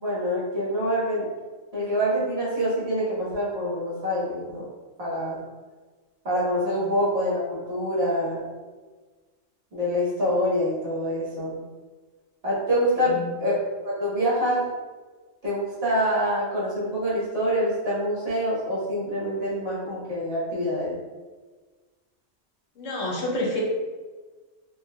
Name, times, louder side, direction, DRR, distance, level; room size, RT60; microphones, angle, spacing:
voice 1, 0.0-1.2 1.7-4.6 5.0-5.4 6.2-8.4 9.7-11.6 12.4-13.6 13.8-14.6 15.4-20.9, equal, 55° right, -8 dB, 1.5 m, -26 dB
voice 2, 22.8-23.6, left 1 dB, 80° left, -2 dB, 1.2 m, -29 dB
4.2 x 3.0 x 2.2 m, 1.3 s
omnidirectional pair, 1.3 m